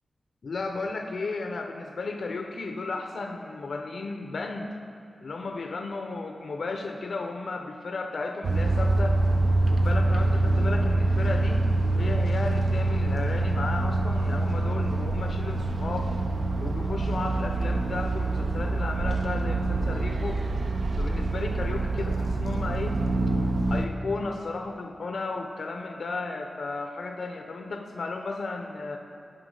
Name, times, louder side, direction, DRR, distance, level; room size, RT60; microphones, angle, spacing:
voice 1, 0.4-4.8 5.2-9.2 9.7-11.6 12.0-16.1 16.6-20.4 21.0-23.0 23.7-29.0, left 3 dB, 70° left, 3 dB, 0.5 m, -34 dB
Cannon shots, 8.4-23.9, right 2 dB, 65° right, 0.6 m, -25 dB
16.0 x 5.6 x 3.8 m, 2.6 s
wide cardioid pair, 105°, 0 cm